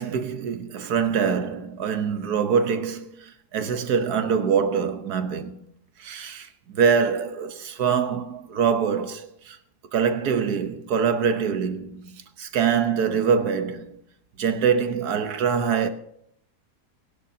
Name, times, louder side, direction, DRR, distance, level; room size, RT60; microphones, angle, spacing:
voice 1, 0.0-3.1 3.5-5.6 6.0-9.6 9.9-14.0 14.4-15.9, right 6 dB, 70° right, 1.5 m, -24 dB
22.0 x 11.0 x 2.8 m
omnidirectional pair, 1.7 m